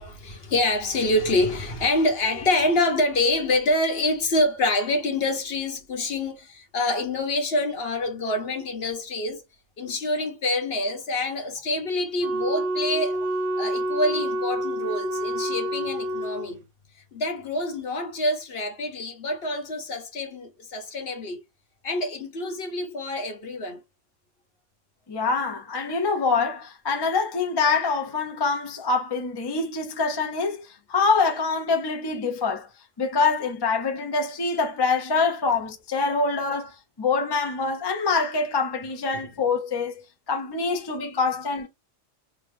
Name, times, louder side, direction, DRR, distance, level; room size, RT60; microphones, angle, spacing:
voice 1, 0.0-9.4 9.8-13.2 13.6-16.6 17.1-21.4 21.8-23.8 39.1-39.2, left 2 dB, 55° left, 1.1 m, -26 dB
Wind instrument woodwind instrument, 12.2-16.5, right 1 dB, 75° right, 1.0 m, -28 dB
voice 2, 25.1-32.7 33.0-40.0 40.3-41.7, left 4 dB, 30° left, 0.5 m, -25 dB
3.8 x 2.2 x 3.2 m
omnidirectional pair, 1.3 m